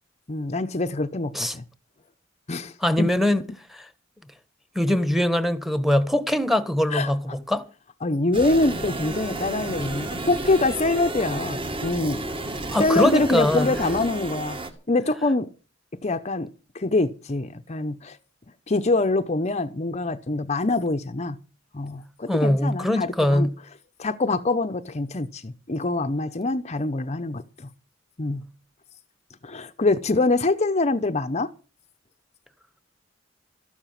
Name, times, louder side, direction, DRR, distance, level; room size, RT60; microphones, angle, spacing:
voice 1, 0.3-1.6 2.5-3.1 6.9-7.4 8.0-12.2 12.8-14.6 14.9-15.5 16.0-16.5 16.7-18.2 18.7-21.4 21.7-23.5 24.0-27.7 28.2-28.5 29.4-31.5, left 2 dB, 35° left, 0.8 m, -25 dB
voice 2, 2.8-3.4 4.7-7.6 12.7-13.7 22.3-23.5, left 1 dB, ahead, 1.4 m, -22 dB
sound 1, 8.3-14.7, right 2 dB, 30° right, 2.2 m, -32 dB
14.0 x 12.0 x 5.9 m
head